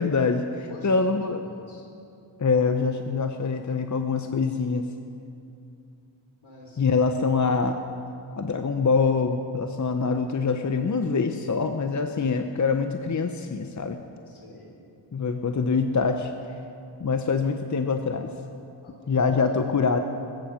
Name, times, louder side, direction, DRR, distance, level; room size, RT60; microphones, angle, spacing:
voice 1, 0.0-1.4 2.4-4.9 6.8-7.8 8.4-14.0 15.1-16.3 17.0-18.3 19.1-20.0, left 4 dB, 35° left, 6 dB, 0.8 m, -24 dB
voice 2, 0.7-1.9 6.4-6.8 14.3-14.7 18.8-19.8, left 2 dB, 70° left, -2 dB, 4.4 m, -47 dB
22.0 x 10.0 x 5.1 m, 2.6 s
cardioid pair, 65°, 49 cm